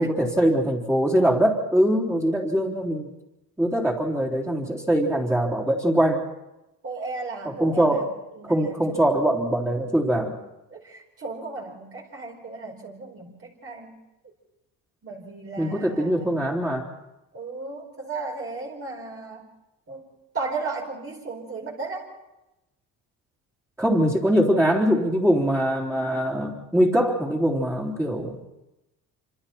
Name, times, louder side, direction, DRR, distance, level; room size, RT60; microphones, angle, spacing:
voice 1, 0.0-3.1 3.6-6.3 7.4-8.1 8.5-10.4 15.6-16.9 23.8-28.4, equal, 5° right, -5 dB, 3.8 m, -22 dB
voice 2, 6.8-8.1 8.3-9.2 9.5-9.6 10.7-14.0 15.0-16.3 17.3-19.5 19.9-20.0 20.3-22.1, right 3 dB, 35° right, -1 dB, 4.8 m, -35 dB
26.5 x 26.0 x 4.5 m, 0.98 s
cardioid pair, 95°, 38 cm